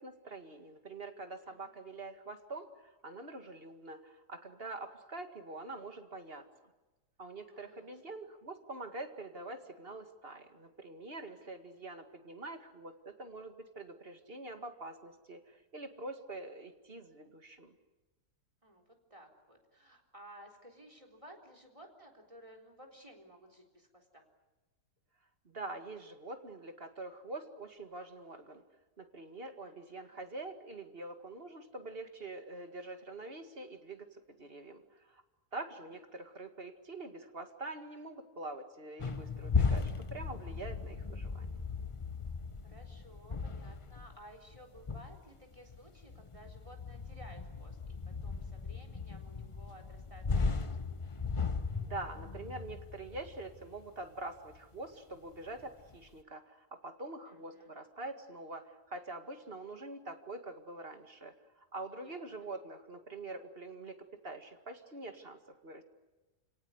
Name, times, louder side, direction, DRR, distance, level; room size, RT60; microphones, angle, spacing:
voice 1, 0.0-6.5 7.2-17.8 25.4-28.6 29.0-35.2 35.5-41.6 51.8-65.8, right 2 dB, 35° right, 6 dB, 2.3 m, -45 dB
voice 2, 7.5-8.2 11.3-11.5 18.6-24.3 29.6-30.1 35.8-35.9 42.6-50.8 57.3-57.7 62.0-62.5, right 1 dB, 20° right, 5 dB, 4.0 m, -56 dB
sound 1, 39.0-54.0 54.4-54.6 55.4-56.0, left 4 dB, 25° left, 0.7 m, -37 dB
29.5 x 18.0 x 9.6 m, 1.1 s
omnidirectional pair, 1.7 m